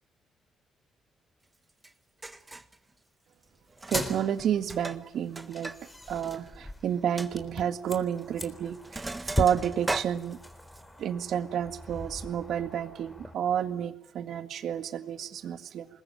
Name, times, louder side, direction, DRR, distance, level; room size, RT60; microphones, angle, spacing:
Sink (filling or washing), 1.8-1.9 2.2-2.8 3.7-4.1 4.4-5.8 6.1-6.2 6.6-6.7 7.2-7.3 8.2-8.4 8.7-10.8, right 2 dB, 15° right, 1.6 m, -37 dB
sound 1, 3.8-13.3, left 1 dB, 10° left, 3.8 m, -39 dB
voice 1, 3.9-5.7 6.1-10.4 11.0-15.9, right 9 dB, 70° right, 9 dB, 1.9 m, -30 dB
25.0 x 21.5 x 9.2 m, 0.74 s
cardioid pair, 90°, 0 cm